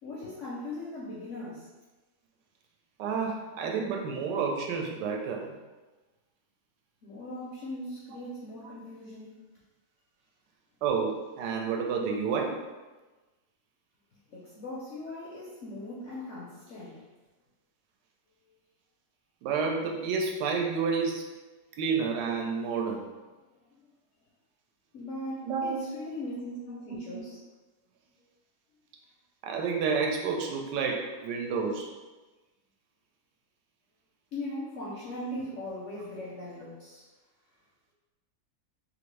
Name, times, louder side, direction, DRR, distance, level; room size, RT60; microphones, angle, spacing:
voice 1, 0.0-1.7 7.0-9.4 14.3-17.1 24.9-27.4 34.3-37.1, left 1 dB, 70° left, -6 dB, 0.7 m, -39 dB
voice 2, 3.0-5.5 10.8-12.6 19.4-21.3 21.8-23.0 25.4-25.8 29.4-31.9, right 5 dB, 80° right, 1 dB, 1.2 m, -30 dB
3.0 x 2.5 x 3.1 m, 1.2 s
omnidirectional pair, 1.9 m